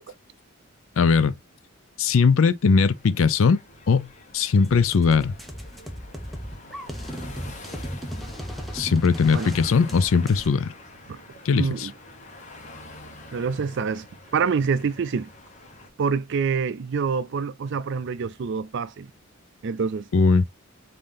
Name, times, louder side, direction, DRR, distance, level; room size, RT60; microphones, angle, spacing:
voice 1, 1.0-1.4 2.0-3.6 3.9-4.1 4.3-5.3 8.7-10.7 11.5-11.9 20.1-20.4, left 5 dB, 65° left, 0.4 m, -19 dB
sound 1, 2.7-15.9, left 2 dB, 35° left, 1.1 m, -46 dB
sound 2, 4.6-10.5, equal, ahead, 0.7 m, -36 dB
voice 2, 11.5-11.9 13.3-14.1 14.3-15.3 16.0-19.1 19.6-20.1, right 5 dB, 60° right, 0.4 m, -26 dB
5.4 x 2.7 x 3.3 m
head